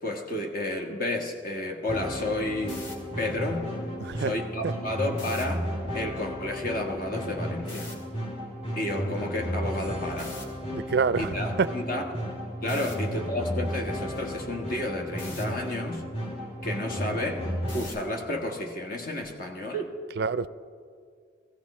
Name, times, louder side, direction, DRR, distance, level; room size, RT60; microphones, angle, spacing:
voice 1, 0.0-2.8 3.2-3.7 4.2-5.7 5.9-7.9 8.7-10.4 11.2-12.1 12.6-16.1 16.6-17.4 17.7-19.9, left 1 dB, 50° left, 2 dB, 1.5 m, -31 dB
sound 1, 1.9-17.9, equal, 30° left, 2.2 m, -34 dB
sound 2, 2.7-2.9 5.1-5.4 7.7-7.9 10.2-10.4 12.7-12.9 15.2-15.5 17.7-18.1, left 2 dB, 85° left, 2.4 m, -42 dB
voice 2, 4.0-4.3 4.6-4.7 10.7-11.7 12.7-12.9 20.2-20.5, right 5 dB, 60° right, 15 dB, 0.4 m, -27 dB
16.0 x 15.5 x 4.3 m, 2.1 s
head